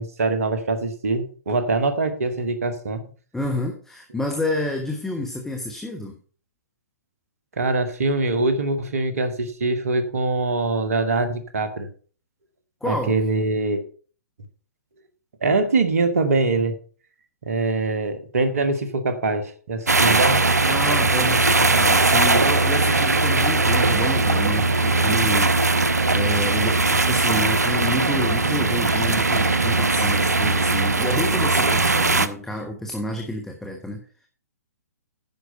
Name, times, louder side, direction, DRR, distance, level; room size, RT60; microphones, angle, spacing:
voice 1, 0.0-3.0 7.6-11.9 12.8-13.8 15.4-16.8 17.4-20.4, right 3 dB, 60° right, 9 dB, 1.7 m, -23 dB
voice 2, 3.3-6.2 12.8-13.2 20.7-34.0, left 1 dB, 5° left, 2 dB, 1.2 m, -29 dB
sound 1, 19.9-32.3, right 3 dB, 80° right, 0.8 m, -19 dB
10.0 x 6.4 x 5.3 m, 0.41 s
figure-of-eight pair, 120°, 9 cm